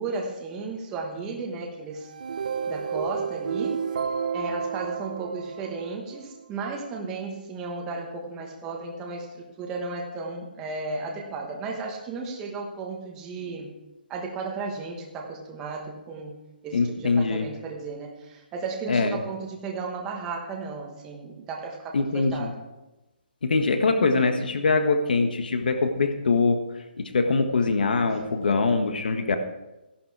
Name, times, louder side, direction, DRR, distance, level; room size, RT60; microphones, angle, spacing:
voice 1, 0.0-2.1 2.7-3.8 4.3-13.7 14.1-16.4 16.6-22.7 28.0-28.6, right 3 dB, 10° right, 0 dB, 1.2 m, -34 dB
sound 1, 2.0-6.3, right 6 dB, 50° right, 0.9 m, -31 dB
voice 2, 16.7-17.5 18.9-19.2 21.9-22.5 23.4-26.6 27.0-29.4, left 4 dB, 60° left, 7 dB, 1.4 m, -23 dB
15.0 x 11.0 x 4.7 m, 1.0 s
hypercardioid pair, 175°, 5 cm